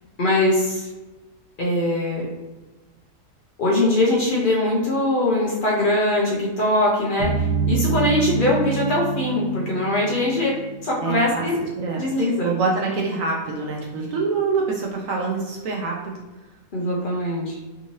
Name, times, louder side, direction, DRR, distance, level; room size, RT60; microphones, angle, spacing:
voice 1, 0.2-0.9 1.6-2.3 3.6-11.6 12.0-12.5 16.7-17.6, left 1 dB, 70° left, -3 dB, 0.4 m, -22 dB
sound 1, 7.2-10.9, right 5 dB, 85° right, 1.5 m, -26 dB
voice 2, 11.0-11.5 11.8-12.0 12.4-16.2, right 4 dB, 70° right, -1 dB, 0.8 m, -25 dB
3.5 x 2.8 x 2.9 m, 1.1 s
omnidirectional pair, 1.7 m